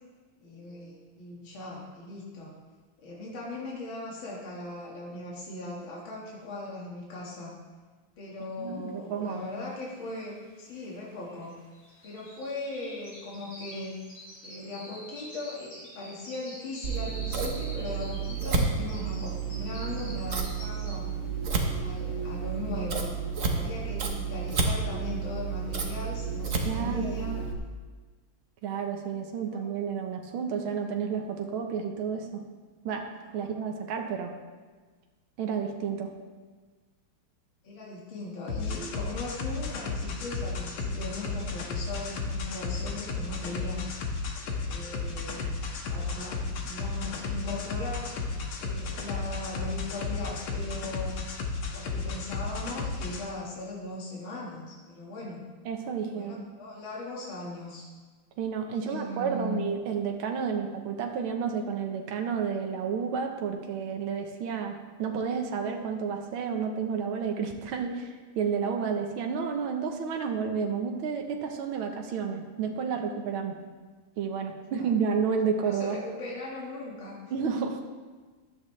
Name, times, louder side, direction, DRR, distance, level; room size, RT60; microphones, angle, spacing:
voice 1, 0.4-2.5 3.0-7.6 8.2-11.6 12.0-14.0 14.4-21.1 21.8-23.1 23.5-27.5 29.5-29.7 33.3-33.5 37.6-43.9 44.6-45.4 45.9-46.4 46.6-48.1 48.6-51.3 51.7-55.4 56.1-57.9 58.7-59.6 74.7-74.9 75.6-77.2, left 2 dB, 75° left, -4 dB, 2.7 m, -39 dB
voice 2, 8.6-9.4 26.7-27.2 28.6-32.4 32.8-33.1 33.3-34.4 35.4-36.1 55.7-56.4 58.4-73.6 74.2-76.0 77.3-77.8, right 6 dB, 80° right, 3 dB, 1.8 m, -31 dB
sound 1, 9.5-9.6 9.8-21.2 21.6-21.9 22.4-22.5, equal, 55° left, 4.5 m, -47 dB
Scissors, 16.8-27.5, right 5 dB, 45° right, 1.3 m, -31 dB
sound 2, 38.5-53.2, left 4 dB, 90° left, 2.1 m, -33 dB
14.5 x 11.0 x 3.3 m, 1.4 s
omnidirectional pair, 2.2 m